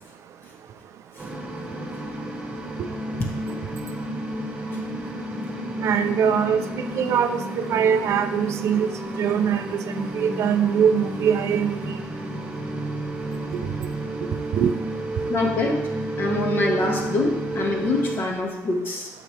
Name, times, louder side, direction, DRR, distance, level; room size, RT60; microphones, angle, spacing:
sound 1, 1.2-18.2, right 1 dB, 20° right, 1.5 m, -31 dB
voice 1, 5.8-7.4 7.7-8.9 9.2-12.0 13.5-13.6 14.5-14.7, right 8 dB, 55° right, 8 dB, 0.6 m, -22 dB
voice 2, 15.3-15.8 16.2-19.1, left 2 dB, 40° left, 0 dB, 1.9 m, -24 dB
9.3 x 6.8 x 3.4 m, 1.0 s
cardioid pair, 135°, 6 cm